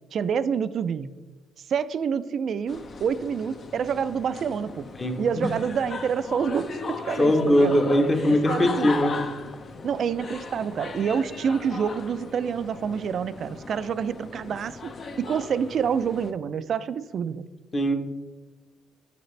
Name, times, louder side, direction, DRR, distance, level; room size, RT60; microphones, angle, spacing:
voice 1, 0.1-1.1 1.7-4.9 5.2-7.8 8.3-8.9 9.8-17.5, right 7 dB, 60° right, 15 dB, 0.3 m, -27 dB
sound 1, 2.7-16.3, left 4 dB, 45° left, 0.6 m, -37 dB
voice 2, 7.2-9.1 17.7-17.9, left 1 dB, 30° left, 5 dB, 1.0 m, -20 dB
6.7 x 6.6 x 3.2 m, 1.2 s
cardioid pair, 90°, 0 cm